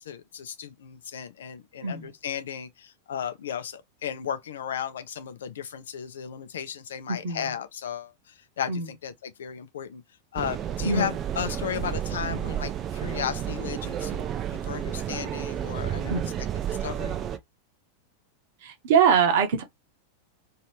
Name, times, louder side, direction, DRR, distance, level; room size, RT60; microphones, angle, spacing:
voice 1, 0.0-10.0 10.3-17.2, left 9 dB, 65° left, 0.6 m, -35 dB
voice 2, 7.1-7.5 8.7-8.9 10.8-11.1 16.1-16.4 18.6-19.6, right 6 dB, 55° right, 1.0 m, -23 dB
sound 1, 10.4-17.4, right 10 dB, 30° right, 0.5 m, -31 dB
3.1 x 2.8 x 2.9 m
figure-of-eight pair, 90°, 0 cm